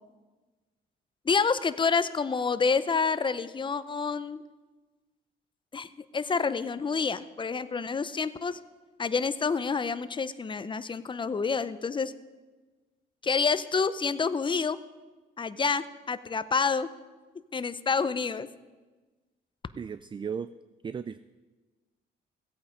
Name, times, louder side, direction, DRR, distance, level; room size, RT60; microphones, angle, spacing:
voice 1, 1.3-4.4 5.7-5.9 6.1-8.6 9.0-12.1 13.2-14.8 15.4-16.9 17.5-18.5, left 5 dB, 25° left, 14 dB, 0.6 m, -28 dB
voice 2, 19.8-20.5 20.8-21.2, right 6 dB, 25° right, 14 dB, 0.3 m, -35 dB
16.0 x 8.4 x 5.0 m, 1.3 s
cardioid pair, 90°, 20 cm